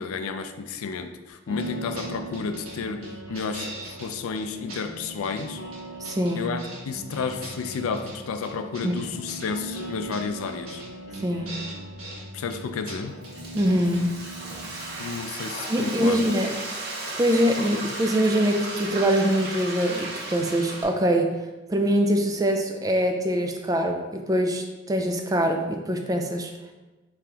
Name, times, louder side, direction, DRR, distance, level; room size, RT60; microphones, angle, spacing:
voice 1, 0.0-3.7 4.0-5.6 6.4-10.8 12.3-13.2 15.0-16.4, left 5 dB, 85° left, 8 dB, 0.4 m, -31 dB
sound 1, 1.5-15.1, right 1 dB, 25° left, 1.3 m, -40 dB
sound 2, 1.6-1.7 1.9-2.1 2.3-2.7 3.0-4.1 4.4-4.5 4.7-5.5 5.7-6.8 7.1-8.1 8.4-9.5 9.8-9.9 10.1-10.2 10.5-10.9 11.1-11.2 11.5-12.2 12.5-12.6 12.9-13.0 13.2-13.7 13.9-14.0, right 2 dB, 85° right, 1.5 m, -41 dB
voice 2, 6.0-6.5 8.8-9.0 11.2-11.6 13.5-14.1 14.8-15.1 15.7-16.6 17.2-21.3 21.7-26.5, equal, 15° right, 4 dB, 0.3 m, -24 dB
Frying (food), 13.0-20.8, right 2 dB, 50° right, 0.8 m, -35 dB
5.0 x 2.9 x 3.4 m, 1.2 s
head